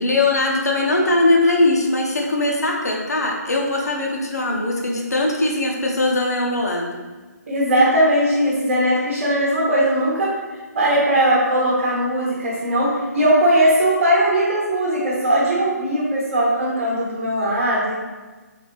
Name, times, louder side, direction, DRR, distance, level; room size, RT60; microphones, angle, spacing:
voice 1, 0.0-6.9, left 2 dB, 65° left, -1 dB, 0.8 m, -20 dB
voice 2, 7.5-10.3 10.7-17.9, right 1 dB, 40° right, -6 dB, 1.0 m, -19 dB
4.1 x 3.4 x 2.9 m, 1.3 s
figure-of-eight pair, 145°, 9 cm